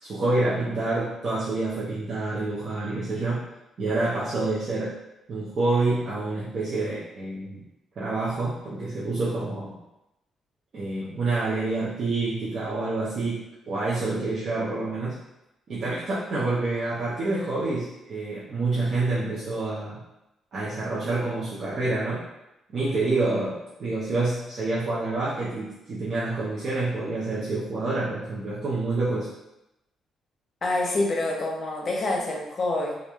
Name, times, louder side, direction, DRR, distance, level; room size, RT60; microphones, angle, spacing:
voice 1, 0.0-3.5 3.8-4.9 5.3-7.6 8.0-9.7 10.7-15.2 15.7-20.0 20.5-22.2 22.7-29.3, right 2 dB, 55° right, -9 dB, 0.6 m, -27 dB
voice 2, 30.6-33.0, left 2 dB, 45° left, 0 dB, 0.6 m, -26 dB
2.5 x 2.2 x 2.9 m, 0.91 s
cardioid pair, 90°, 0 cm